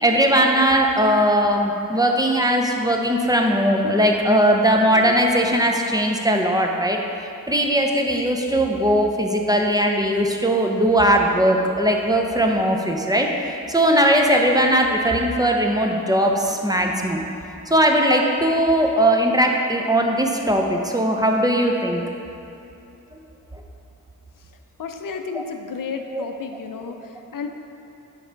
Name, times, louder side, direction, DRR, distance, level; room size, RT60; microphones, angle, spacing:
voice 1, 0.0-7.0 7.5-17.2 17.7-22.0 25.3-25.4 26.1-26.2, equal, 10° right, 1 dB, 0.5 m, -19 dB
voice 2, 24.8-27.5, left 5 dB, 65° left, 5 dB, 0.5 m, -32 dB
6.7 x 3.4 x 5.1 m, 2.8 s
wide cardioid pair, 75°, 35 cm